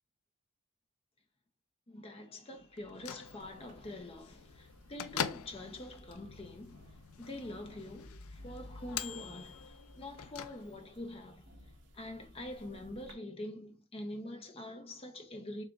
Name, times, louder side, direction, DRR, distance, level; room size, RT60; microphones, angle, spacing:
voice 1, 1.9-6.8 7.2-11.5 11.9-15.6, left 1 dB, 25° left, 0.6 m, -45 dB
Bell / Microwave oven, 2.7-11.0, left 8 dB, 75° left, 0.4 m, -44 dB
sound 1, 3.4-13.1, equal, 55° right, 1.6 m, -58 dB
6.8 x 2.4 x 2.4 m
head